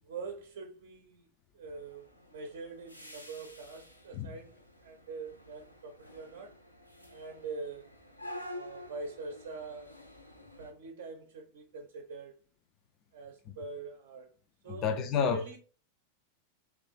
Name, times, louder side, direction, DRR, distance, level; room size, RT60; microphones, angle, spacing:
voice 1, 0.0-1.3 1.5-6.5 7.1-7.9 8.5-10.0 10.6-12.4 13.1-14.3 14.6-15.6, right 3 dB, 55° right, 0.6 m, -44 dB
sound 1, 1.7-10.7, left 1 dB, 90° left, 0.5 m, -49 dB
voice 2, 14.8-15.6, left 6 dB, 35° left, 0.4 m, -29 dB
3.1 x 2.3 x 3.8 m
figure-of-eight pair, 90°, 0 cm